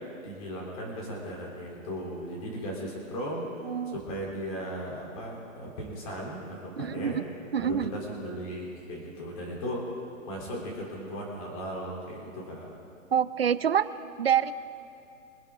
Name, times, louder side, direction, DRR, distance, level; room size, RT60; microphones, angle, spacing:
voice 1, 0.2-3.5 3.9-7.2 7.6-9.9 10.3-12.7, equal, 25° left, -3 dB, 3.6 m, -36 dB
voice 2, 3.6-4.0 6.8-7.1 7.5-7.9 13.1-13.9 14.2-14.5, right 8 dB, 50° right, 14 dB, 0.6 m, -26 dB
25.0 x 10.5 x 3.8 m, 2.6 s
hypercardioid pair, 175°, 40 cm